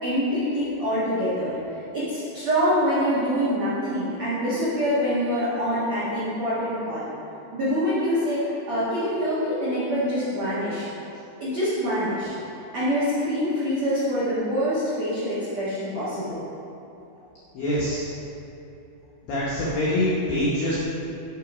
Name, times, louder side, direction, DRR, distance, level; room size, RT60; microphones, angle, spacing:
voice 1, 0.0-1.5 1.9-7.1 7.5-10.9 11.4-12.3 12.7-16.4, equal, 75° right, -12 dB, 1.6 m, -25 dB
voice 2, 17.5-18.1 19.3-20.8, left 1 dB, 85° left, -7 dB, 2.0 m, -24 dB
11.0 x 3.9 x 4.8 m, 2.9 s
omnidirectional pair, 5.8 m